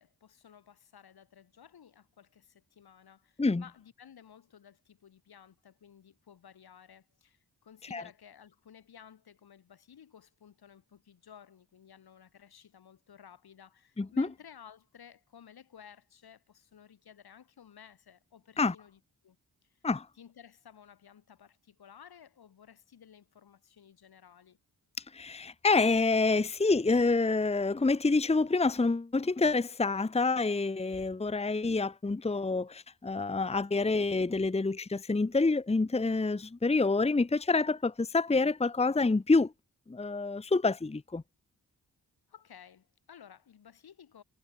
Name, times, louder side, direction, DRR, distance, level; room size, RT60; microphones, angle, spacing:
voice 1, 0.0-19.4 19.6-19.8 20.2-24.6 42.3-44.2, left 8 dB, 80° left, 7.1 m, -55 dB
voice 2, 14.0-14.3 18.6-18.7 19.8-20.1 25.1-39.5 39.9-41.2, left 3 dB, 15° left, 0.9 m, -27 dB
cardioid pair, 65°, 37 cm